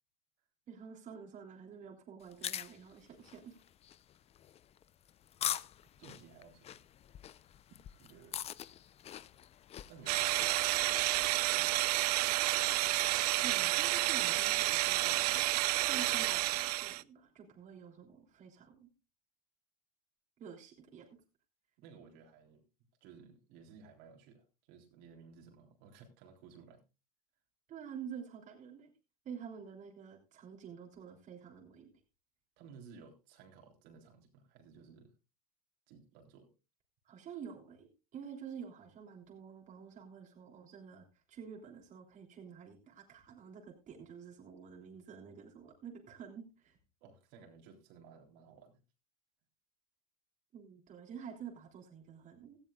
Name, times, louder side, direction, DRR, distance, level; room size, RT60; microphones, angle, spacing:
voice 1, 0.7-3.6 13.4-15.5 15.8-18.9 20.4-21.1 27.7-28.9 29.2-31.9 37.0-46.8 50.5-52.6, right 7 dB, 40° right, 1 dB, 3.3 m, -49 dB
sound 1, 2.2-11.3, left 11 dB, 30° left, 0.6 m, -44 dB
voice 2, 6.0-6.8 8.0-8.4 9.9-11.1 11.5-12.0 21.8-22.6 23.0-26.8 32.6-35.1 35.9-36.5 47.0-48.8, right 5 dB, 60° right, 2 dB, 3.6 m, -57 dB
sound 2, 10.1-17.0, right 18 dB, 75° right, 0.5 m, -30 dB
17.0 x 14.0 x 2.4 m, 0.28 s
hypercardioid pair, 105°, 20 cm